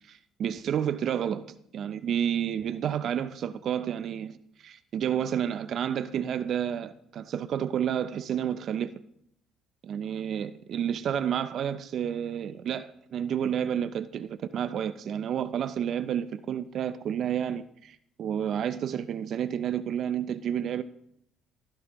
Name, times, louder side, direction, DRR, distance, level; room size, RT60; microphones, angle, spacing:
voice 1, 0.1-1.4 1.7-8.9 9.8-20.8, right 9 dB, 55° right, 0.5 m, -30 dB
12.0 x 11.0 x 3.0 m
cardioid pair, 110°, 0 cm